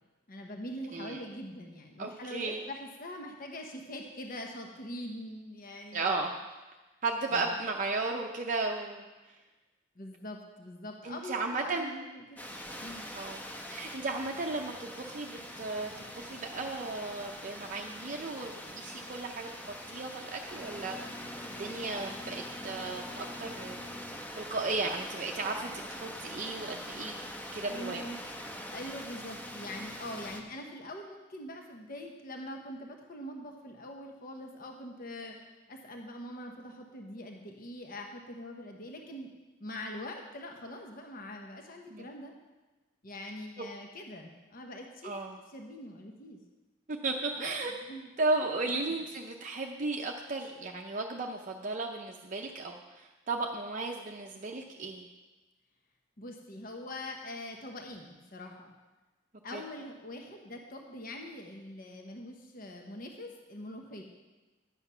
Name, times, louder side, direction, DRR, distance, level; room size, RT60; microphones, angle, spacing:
voice 1, 0.3-6.2 7.3-7.5 10.0-12.4 12.8-13.1 27.7-28.2 28.7-35.4 35.7-39.3 39.6-42.3 43.0-45.1 45.5-46.4 47.4-47.6 47.9-48.1 56.2-58.7 59.4-64.0, left 1 dB, 45° left, 2 dB, 0.9 m, -43 dB
voice 2, 2.0-2.6 5.9-6.3 7.0-9.1 11.0-11.9 13.1-13.4 13.7-19.5 19.9-23.9 24.4-27.2 27.5-28.0 41.9-42.1 45.0-45.4 46.9-47.7 48.2-55.1 59.5-59.6, right 3 dB, 40° right, 1 dB, 0.6 m, -35 dB
sound 1, 12.4-30.4, equal, 10° left, 0.8 m, -43 dB
11.0 x 8.0 x 5.5 m, 1.2 s
head